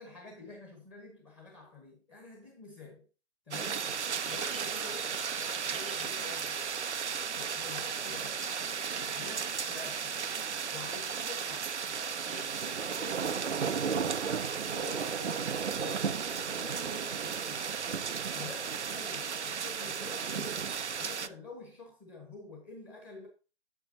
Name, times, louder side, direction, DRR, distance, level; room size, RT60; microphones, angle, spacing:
voice 1, 0.0-3.0 3.5-4.0 4.2-5.2 5.6-6.8 7.3-8.5 9.0-10.2 10.7-11.6 11.9-13.5 13.8-14.4 14.7-17.9 18.3-20.6 21.0-23.3, left 3 dB, 10° left, 1.3 m, -48 dB
sound 1, 3.5-21.3, right 6 dB, 80° right, 0.7 m, -34 dB
sound 2, 4.2-12.7, right 4 dB, 30° right, 0.4 m, -50 dB
8.2 x 8.1 x 2.7 m
figure-of-eight pair, 150°, 34 cm